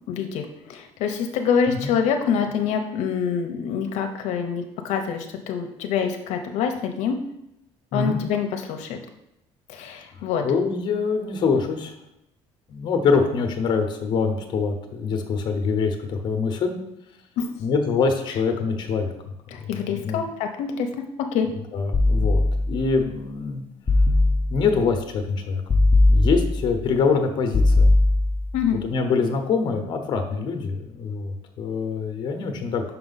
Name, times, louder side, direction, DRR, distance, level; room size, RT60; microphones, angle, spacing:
voice 1, 0.1-7.2 7.9-9.0 9.7-10.4 17.4-17.5 19.5-21.5 28.5-28.8, left 7 dB, 75° left, 5 dB, 0.6 m, -26 dB
voice 2, 10.2-11.9 12.7-16.8 17.6-19.1 19.6-20.2 21.7-23.6 24.5-25.6 26.1-27.9 28.8-32.8, left 5 dB, 40° left, 5 dB, 0.8 m, -24 dB
sound 1, 21.9-23.0 23.9-24.8 25.7-26.8 27.5-28.6, left 2 dB, 15° left, 0.4 m, -19 dB
5.8 x 4.8 x 4.0 m, 0.84 s
cardioid pair, 170°, 12 cm